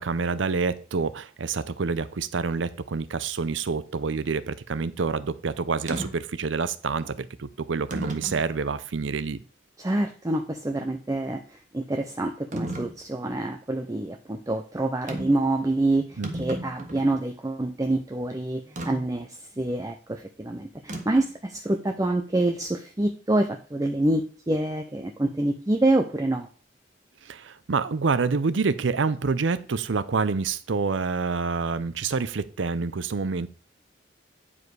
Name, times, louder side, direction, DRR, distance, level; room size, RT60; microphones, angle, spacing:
voice 1, 0.0-9.4 16.2-16.3 27.2-33.5, right 4 dB, 80° right, 16 dB, 0.6 m, -27 dB
sound 1, 5.9-6.1 7.0-7.2 7.9-8.4 9.1-9.2 12.5-12.9 15.1-15.4 15.8-15.9 16.1-17.2 18.8-18.9 20.9-21.3, right 1 dB, 40° right, 1.4 m, -33 dB
voice 2, 9.8-26.5, right 2 dB, 20° right, 4 dB, 0.5 m, -26 dB
9.8 x 4.9 x 4.8 m, 0.39 s
head